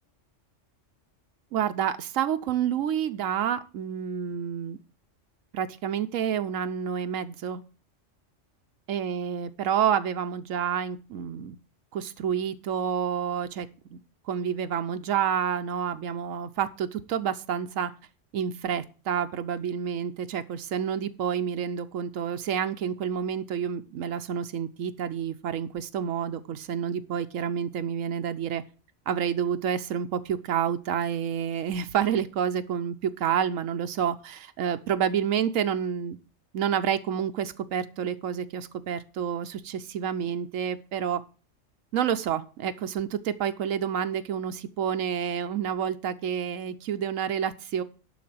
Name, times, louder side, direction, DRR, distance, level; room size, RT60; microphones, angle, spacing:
voice 1, 1.5-4.8 5.5-7.6 8.9-11.6 11.9-14.0 14.3-17.9 18.3-28.6 29.1-36.2 36.5-41.2 41.9-47.8, right 8 dB, 85° right, 9 dB, 1.1 m, -29 dB
11.5 x 4.2 x 7.7 m, 0.36 s
omnidirectional pair, 1.3 m